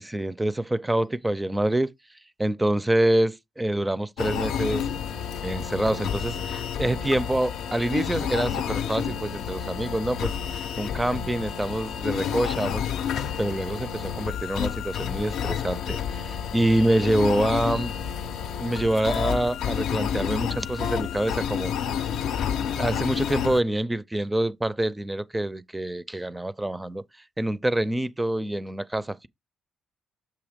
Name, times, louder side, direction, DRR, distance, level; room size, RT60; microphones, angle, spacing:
voice 1, 0.0-1.9 2.4-4.9 5.4-10.3 10.8-12.8 13.4-17.9 18.6-21.7 22.7-27.0 27.4-29.3, right 1 dB, 10° right, 0.4 m, -26 dB
sound 1, 4.2-23.6, left 8 dB, 80° left, 0.5 m, -30 dB
7.0 x 2.8 x 5.1 m
cardioid pair, 90°, 0 cm